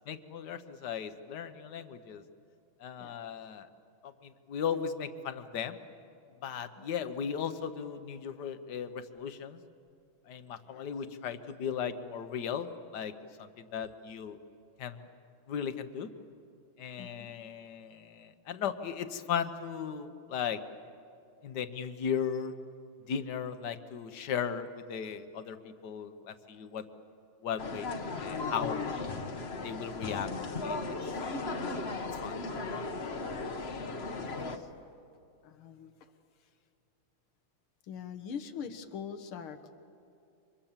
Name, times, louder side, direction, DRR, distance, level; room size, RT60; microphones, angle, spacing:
voice 1, 0.1-2.2 2.8-3.7 4.0-5.8 6.4-9.6 10.3-13.1 13.4-14.4 14.8-15.0 15.5-16.1 16.8-20.6 21.4-22.5 23.1-26.8 27.4-28.8 29.6-30.3 30.6-30.8 32.2-32.3, left 7 dB, 60° left, 10 dB, 1.6 m, -36 dB
voice 2, 17.0-17.3 32.5-32.6 33.2-33.3 34.2-34.7 35.4-35.9 37.9-39.7, left 7 dB, 85° left, 8 dB, 2.1 m, -43 dB
sound 1, 27.6-34.6, left 3 dB, 35° left, 1.1 m, -36 dB
29.0 x 25.5 x 7.4 m, 2.6 s
omnidirectional pair, 2.3 m